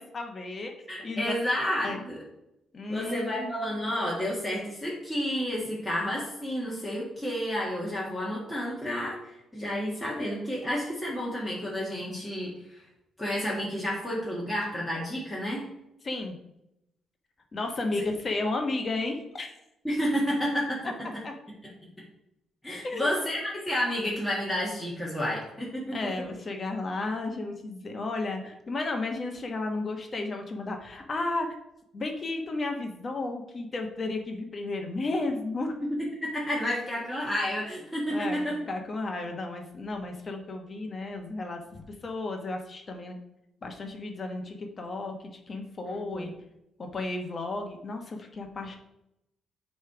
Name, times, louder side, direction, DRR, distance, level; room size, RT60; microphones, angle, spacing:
voice 1, 0.0-0.7 1.0-1.3 1.8-2.0 2.7-3.5 16.0-16.4 17.5-19.5 21.2-21.3 22.8-23.1 25.9-31.6 31.9-35.8 38.1-43.2 43.6-46.3 46.8-48.8, left 2 dB, 40° left, 3 dB, 1.0 m, -33 dB
voice 2, 0.9-2.2 2.9-12.8 13.2-15.6 19.8-20.8 22.6-26.0 35.8-35.9 36.2-38.6 45.8-46.3, equal, 5° left, -6 dB, 1.7 m, -30 dB
8.1 x 3.2 x 4.8 m, 0.85 s
cardioid pair, 90°, 0 cm